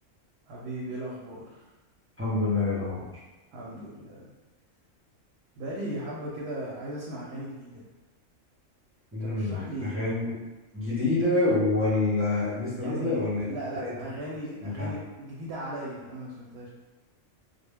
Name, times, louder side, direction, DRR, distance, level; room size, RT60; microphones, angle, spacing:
voice 1, 0.5-1.7 3.5-4.3 5.6-7.9 9.2-10.0 12.8-13.2 13.5-16.7, right 1 dB, 65° right, -5 dB, 0.7 m, -37 dB
voice 2, 2.2-3.1 9.1-10.4 10.7-13.5 13.8-13.9 14.6-14.9, left 2 dB, 20° right, -10 dB, 0.4 m, -27 dB
2.2 x 2.0 x 3.3 m, 1.1 s
omnidirectional pair, 1.3 m